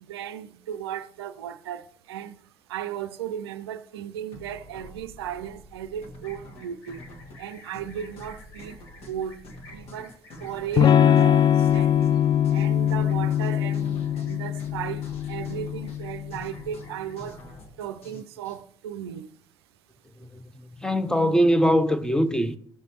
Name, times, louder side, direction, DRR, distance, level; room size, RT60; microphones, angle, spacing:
voice 1, 0.0-2.4 2.7-7.0 7.4-9.4 9.7-10.1 10.4-12.1 12.5-15.0 15.3-17.4 17.8-19.3, right 9 dB, 70° right, 0.4 m, -35 dB
sound 1, 4.3-18.6, left 1 dB, 50° left, 1.8 m, -46 dB
sound 2, 6.2-17.1, left 2 dB, 70° left, 2.1 m, -53 dB
Electric guitar / Strum, 10.8-16.5, left 9 dB, 35° left, 0.4 m, -22 dB
voice 2, 20.8-22.6, equal, 5° left, 0.7 m, -22 dB
15.0 x 6.6 x 3.0 m
figure-of-eight pair, 55°, 13 cm